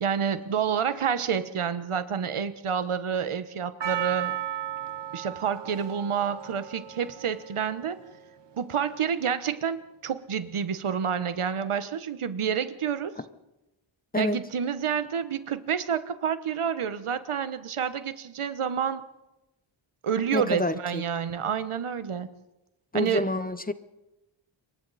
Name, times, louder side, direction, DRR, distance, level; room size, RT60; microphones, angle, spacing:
voice 1, 0.0-4.3 5.1-8.0 8.6-13.1 14.2-19.0 20.0-22.3 22.9-23.3, right 7 dB, 80° right, 12 dB, 1.3 m, -29 dB
Percussion, 3.8-8.2 8.8-8.9, right 11 dB, 55° right, 1.2 m, -35 dB
voice 2, 20.3-21.0 22.9-23.7, left 2 dB, 20° left, 13 dB, 0.9 m, -28 dB
27.5 x 23.5 x 4.2 m, 0.97 s
wide cardioid pair, 105°, 50 cm